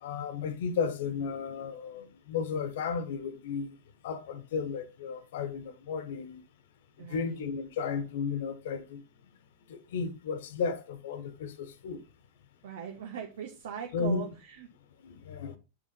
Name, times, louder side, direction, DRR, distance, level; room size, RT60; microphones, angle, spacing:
voice 1, 0.0-3.8 4.0-6.5 7.0-9.0 9.7-12.1 13.9-14.2 15.0-15.6, left 5 dB, 60° left, 1.3 m, -34 dB
voice 2, 7.0-7.4 12.6-14.7, right 7 dB, 60° right, 1.3 m, -40 dB
8.9 x 6.1 x 4.3 m
figure-of-eight pair, 90°, 0 cm